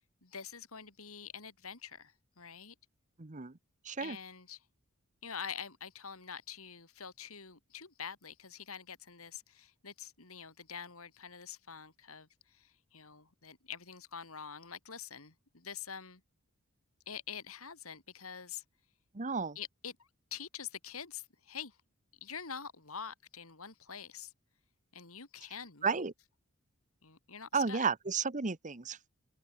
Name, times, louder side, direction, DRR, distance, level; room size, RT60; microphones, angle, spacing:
voice 1, 0.2-2.7 4.0-4.6 5.2-16.2 17.1-18.6 19.5-21.8 22.2-24.3 24.9-26.0 27.0-27.8, left 7 dB, 75° left, 3.5 m, -46 dB
voice 2, 3.2-3.5 3.8-4.2 19.1-19.6 25.8-26.1 27.5-29.1, right 5 dB, 35° right, 1.1 m, -33 dB
open air
head